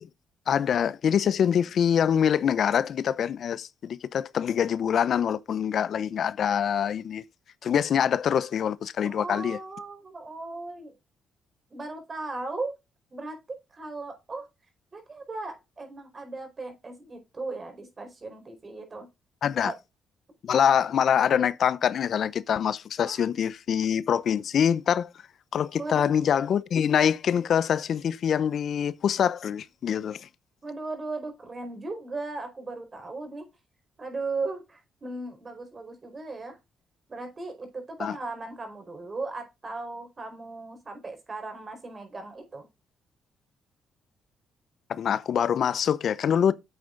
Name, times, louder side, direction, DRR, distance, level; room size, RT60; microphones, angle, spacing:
voice 1, 0.5-7.2 7.6-9.6 19.4-19.7 20.4-25.1 25.5-30.3 38.0-38.1 44.9-46.5, left 8 dB, 60° left, 0.6 m, -25 dB
voice 2, 9.0-10.9 11.7-12.7 13.1-14.5 14.9-19.1 19.6-19.7 23.0-23.2 25.8-26.1 30.6-33.5 34.0-36.6 37.1-42.7, right 3 dB, 35° right, 4.4 m, -37 dB
9.2 x 7.9 x 3.9 m
cardioid pair, 90°, 0 cm